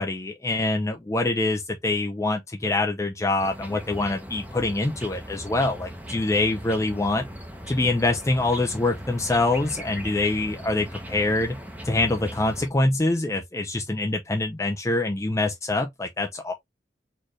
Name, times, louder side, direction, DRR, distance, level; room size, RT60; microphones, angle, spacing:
voice 1, 0.0-7.2 7.7-11.6 11.8-16.5, left 2 dB, 15° left, 0.5 m, -25 dB
sound 1, 3.4-12.7, equal, 10° right, 0.8 m, -38 dB
4.3 x 3.1 x 3.1 m
head